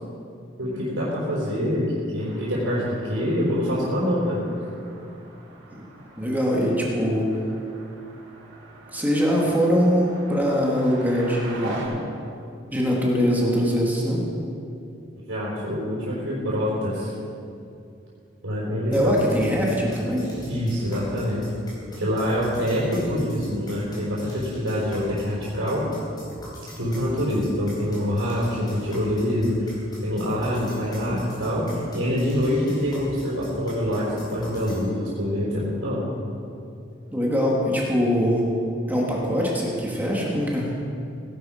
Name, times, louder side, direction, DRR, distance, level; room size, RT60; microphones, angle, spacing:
voice 1, 0.6-4.4 15.3-17.1 18.4-19.2 20.5-21.5 22.0-25.9 26.8-36.1, equal, 80° right, -8 dB, 4.0 m, -25 dB
sound 1, 2.2-11.8, right 2 dB, 65° right, 3.6 m, -43 dB
voice 2, 6.2-7.4 8.9-11.9 12.7-14.2 18.9-20.3 37.1-38.5 38.9-40.7, equal, 10° right, -3 dB, 1.9 m, -22 dB
sound 2, 18.9-34.8, equal, 20° left, 4.4 m, -42 dB
17.5 x 11.5 x 5.0 m, 2.6 s
head